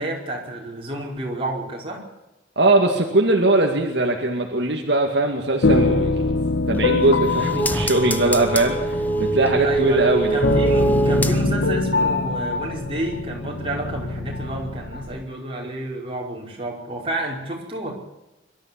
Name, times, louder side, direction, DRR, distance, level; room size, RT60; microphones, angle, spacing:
voice 1, 0.0-2.0 9.6-17.9, right 1 dB, 30° right, -1 dB, 5.2 m, -30 dB
voice 2, 2.6-6.2 6.7-10.4, right 2 dB, 60° right, 1 dB, 2.3 m, -20 dB
sound 1, 5.6-15.2, left 2 dB, 85° left, 1.4 m, -24 dB
light stove, 6.7-11.8 12.1-12.2, right 2 dB, 10° left, 1.0 m, -24 dB
23.5 x 13.0 x 8.6 m, 0.99 s
head